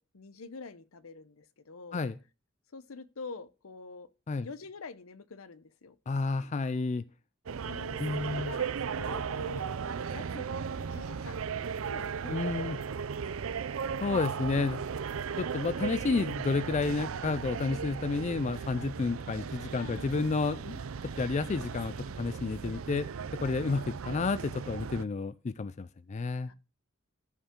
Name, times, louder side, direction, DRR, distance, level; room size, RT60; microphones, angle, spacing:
voice 1, 0.0-2.0 2.7-4.1 4.4-6.0 7.6-13.1 13.4-13.6 18.8-18.9 19.8-20.3 23.4-23.6 26.4-26.5, left 4 dB, 75° left, 0.8 m, -46 dB
voice 2, 6.1-7.0 8.0-8.5 12.3-12.8 14.0-14.8 15.4-23.1 23.4-26.5, left 4 dB, 35° left, 0.4 m, -31 dB
sound 1, 7.5-25.0, right 6 dB, 70° right, 0.5 m, -36 dB
14.0 x 5.6 x 3.7 m
head